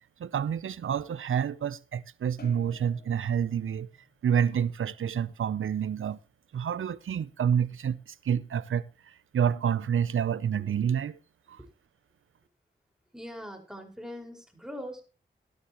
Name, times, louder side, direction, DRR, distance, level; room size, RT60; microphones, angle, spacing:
voice 1, 0.2-3.9 4.2-6.2 6.5-11.2 11.5-11.6, right 8 dB, 80° right, 0.6 m, -28 dB
sound 1, 2.4-4.9, left 3 dB, 55° left, 5.2 m, -53 dB
voice 2, 13.1-15.0, equal, 5° right, 5.0 m, -42 dB
16.0 x 12.0 x 3.0 m
cardioid pair, 40°, 21 cm